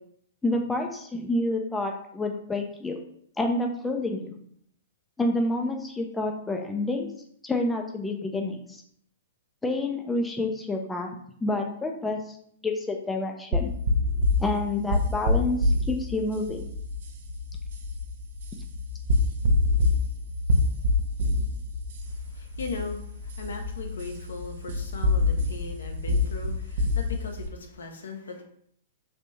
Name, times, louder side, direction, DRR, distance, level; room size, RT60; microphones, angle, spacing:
voice 1, 0.4-3.0 3.4-4.4 5.2-7.1 7.4-8.8 9.6-11.1 11.4-12.2 12.6-13.7 14.4-16.7, left 2 dB, 10° left, 2 dB, 0.4 m, -28 dB
sound 1, 13.5-27.5, left 2 dB, 60° right, 0.4 m, -26 dB
voice 2, 22.1-28.4, left 4 dB, 65° left, 4 dB, 0.6 m, -38 dB
3.3 x 2.5 x 2.9 m, 0.65 s
figure-of-eight pair, 105°, 0 cm